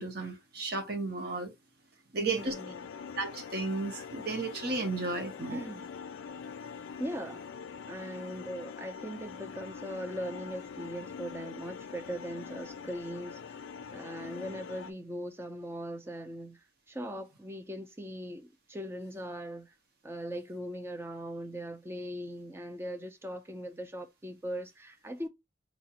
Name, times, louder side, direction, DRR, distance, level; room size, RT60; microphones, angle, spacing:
voice 1, 0.0-1.5 2.1-2.5 3.2-5.6, right 3 dB, 50° right, 0.8 m, -33 dB
voice 2, 2.2-2.9 5.5-5.8 7.0-7.5 7.9-13.6 13.9-19.7 20.0-25.3, equal, 10° right, 0.4 m, -40 dB
sound 1, 2.4-14.9, left 6 dB, 80° left, 0.4 m, -44 dB
4.2 x 2.4 x 2.8 m
head